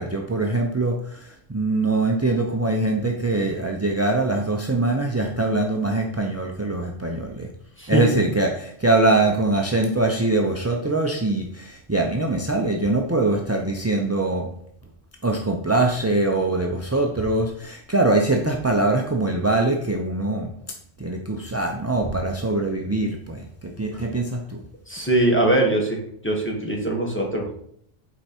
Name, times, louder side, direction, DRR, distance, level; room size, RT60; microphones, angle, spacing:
voice 1, 0.0-7.5 7.9-14.5 15.2-24.6, right 2 dB, 20° right, 1 dB, 0.4 m, -23 dB
voice 2, 24.9-27.6, right 1 dB, 10° left, -1 dB, 1.5 m, -22 dB
8.2 x 4.6 x 4.4 m, 0.68 s
omnidirectional pair, 1.2 m